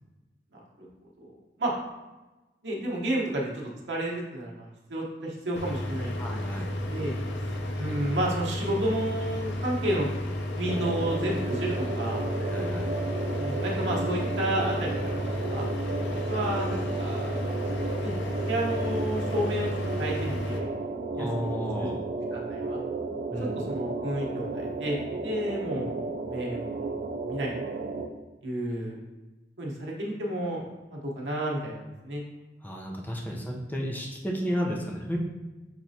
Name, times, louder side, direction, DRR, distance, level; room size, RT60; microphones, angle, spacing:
voice 1, 0.5-0.9 1.2-1.3 1.6-1.7 2.6-6.5 6.9-7.1 7.8-10.1 10.5-12.3 13.4-15.2 15.5-15.7 16.3-17.5 18.0-18.1 18.5-19.7 19.9-20.8 21.2-21.9 22.3-22.8 23.6-26.0 26.3-27.5 28.4-29.0 29.6-30.6 30.9-32.2, right 1 dB, 80° right, -3 dB, 0.9 m, -31 dB
sound 1, 5.6-20.6, left 1 dB, 85° left, 0.6 m, -32 dB
voice 2, 6.2-6.7 12.4-12.9 21.1-22.0 23.3-23.7 32.6-35.2, equal, 10° left, -1 dB, 0.7 m, -32 dB
sound 2, 10.7-28.1, right 3 dB, 45° right, 0.3 m, -33 dB
5.9 x 3.1 x 2.7 m, 1.1 s
head